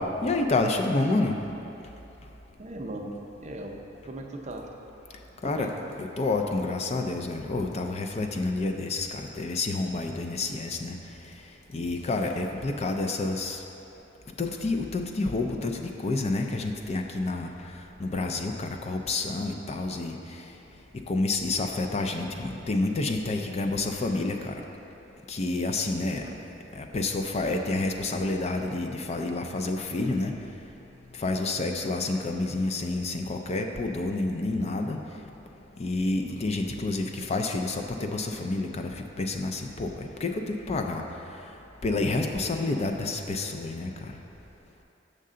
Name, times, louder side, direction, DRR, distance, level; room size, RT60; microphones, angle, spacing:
voice 1, 0.0-1.4 5.4-5.7 6.0-11.0 11.7-13.6 14.4-17.5 18.0-20.1 21.1-24.5 25.3-26.2 26.8-30.3 31.2-35.0 35.8-41.0 41.8-43.9, left 2 dB, 35° left, 4 dB, 0.4 m, -29 dB
voice 2, 2.6-4.7 5.4-5.7 26.2-26.4, right 1 dB, 40° right, 1 dB, 0.6 m, -38 dB
6.6 x 6.5 x 3.7 m, 2.9 s
head